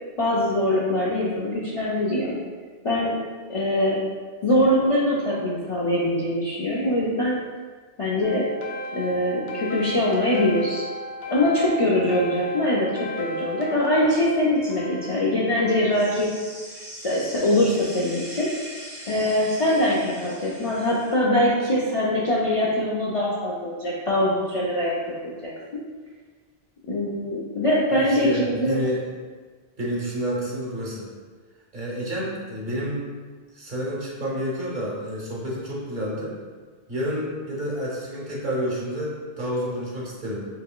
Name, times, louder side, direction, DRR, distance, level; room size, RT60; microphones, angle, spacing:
voice 1, 0.2-2.4 2.8-3.2 3.5-4.0 4.4-7.4 8.0-8.5 8.9-10.9 11.3-16.3 17.0-18.5 19.1-24.9 25.4-25.5 26.9-28.8, left 1 dB, 45° left, -6 dB, 0.4 m, -23 dB
sound 1, 8.2-16.0, equal, 75° left, 0.8 m, -35 dB
sound 2, 15.9-21.1, equal, 80° right, 1.9 m, -41 dB
voice 2, 27.9-29.0 29.8-31.1 31.7-33.0 33.5-36.4 36.9-40.4, equal, 50° right, -5 dB, 0.9 m, -29 dB
4.8 x 2.9 x 2.2 m, 1.5 s
omnidirectional pair, 1.0 m